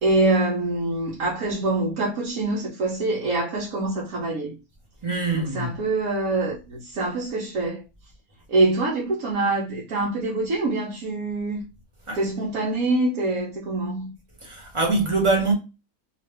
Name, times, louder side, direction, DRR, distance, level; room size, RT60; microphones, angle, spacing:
voice 1, 0.0-4.5 5.3-7.8 8.5-11.6 12.1-14.1, right 2 dB, 80° right, 1.2 m, -25 dB
voice 2, 5.0-5.7 12.1-12.2 14.4-15.5, right 3 dB, 25° right, 1.0 m, -23 dB
2.8 x 2.5 x 3.3 m
omnidirectional pair, 1.5 m